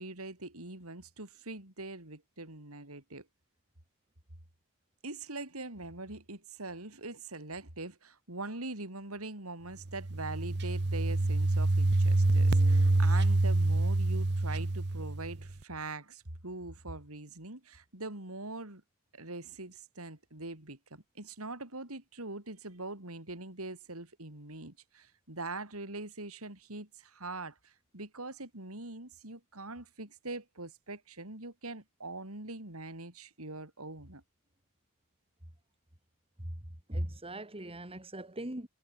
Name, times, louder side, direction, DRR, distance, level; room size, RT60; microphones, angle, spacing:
voice 1, 0.0-3.3 5.0-18.8 19.1-34.2, right 2 dB, 80° right, 5.0 m, -43 dB
sound 1, 9.9-15.5, right 2 dB, 55° right, 1.0 m, -26 dB
voice 2, 36.9-38.7, right 1 dB, 25° right, 3.7 m, -38 dB
head